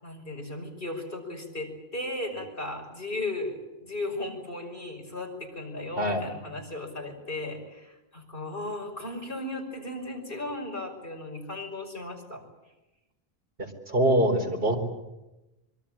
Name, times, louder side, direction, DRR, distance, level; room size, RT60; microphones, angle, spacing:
voice 1, 0.0-12.4, left 2 dB, 60° left, 2 dB, 5.9 m, -36 dB
voice 2, 13.9-14.8, right 1 dB, 65° right, 3 dB, 4.5 m, -23 dB
25.5 x 23.5 x 8.8 m, 1.0 s
omnidirectional pair, 1.0 m